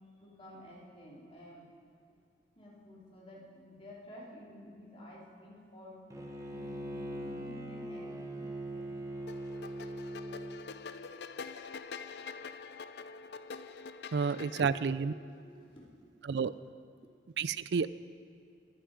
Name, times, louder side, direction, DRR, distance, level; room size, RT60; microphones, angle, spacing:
voice 1, 0.2-1.7 2.5-9.0 14.4-16.3 17.0-17.6, equal, 30° left, -5 dB, 3.4 m, -52 dB
Bowed string instrument, 6.1-10.6, right 1 dB, 20° right, 1.2 m, -41 dB
sound 1, 9.3-14.9, left 5 dB, 65° left, 0.5 m, -45 dB
voice 2, 14.1-15.1 16.3-16.5 17.4-17.9, right 5 dB, 65° right, 16 dB, 0.4 m, -30 dB
23.0 x 9.2 x 5.0 m, 2.5 s
head